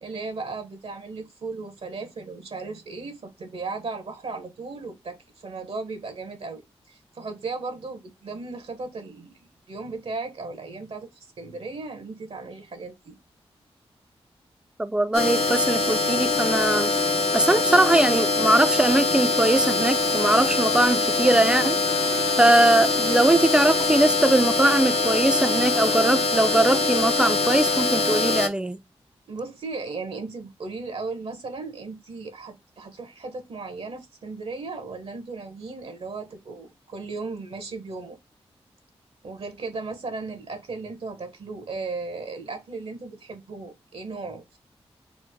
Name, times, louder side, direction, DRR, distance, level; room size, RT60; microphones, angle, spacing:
voice 1, 0.0-6.6 6.9-11.1 11.4-13.2 29.3-38.2 39.2-44.6, right 3 dB, 65° right, 0.8 m, -36 dB
voice 2, 14.8-16.9 17.3-21.8 22.4-28.8, right 1 dB, 10° right, 0.4 m, -21 dB
sound 1, 15.1-28.5, left 3 dB, 70° left, 0.7 m, -23 dB
3.1 x 2.0 x 3.4 m
cardioid pair, 45°, 11 cm